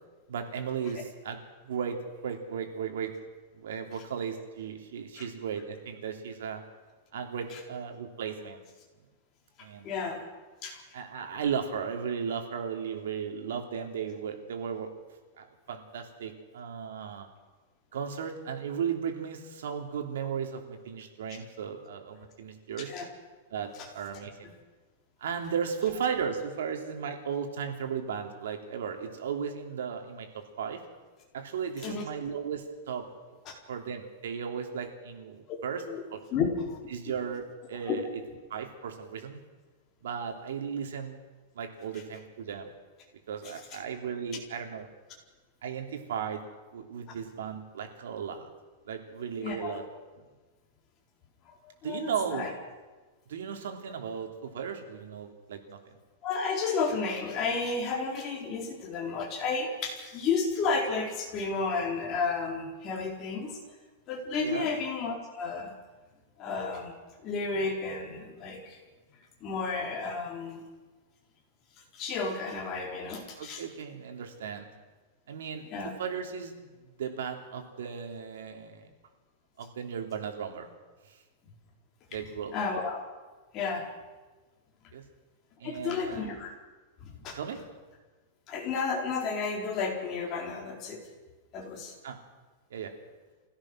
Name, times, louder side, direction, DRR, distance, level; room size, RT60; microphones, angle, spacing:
voice 1, 0.3-1.4 1.6-3.1 3.5-6.6 7.1-8.6 9.6-9.9 10.9-14.9 15.4-17.3 17.9-22.9 23.5-24.5 25.2-30.8 31.3-33.1 33.7-35.8 36.1-36.2 36.9-38.1 38.5-39.4 40.0-41.2 41.5-42.7 43.3-44.9 45.6-46.4 46.7-48.5 48.8-49.8 51.8-52.5 53.3-56.0 64.4-64.7 73.4-74.7 75.3-76.6 76.8-78.9 79.6-80.7 81.1-81.2 82.1-82.6 84.9-85.0 85.6-86.3 87.4-87.6 92.0-92.2 92.7-92.9, right 7 dB, 90° right, 4 dB, 3.3 m, -35 dB
voice 2, 9.8-10.2 10.6-10.8 22.9-23.1 24.4-24.5 31.8-32.0 33.5-33.6 35.9-36.0 36.3-36.8 37.9-38.0 47.1-47.2 49.4-49.8 51.6-52.5 56.2-63.6 64.1-65.7 66.4-66.9 67.2-68.8 69.4-70.6 71.9-73.6 75.7-75.9 82.5-83.0 83.5-83.9 85.6-86.5 87.0-87.4 88.5-91.0 91.5-91.9, left 4 dB, 30° left, 0 dB, 4.2 m, -32 dB
25.0 x 16.5 x 6.4 m, 1.3 s
supercardioid pair, 165°, 0 cm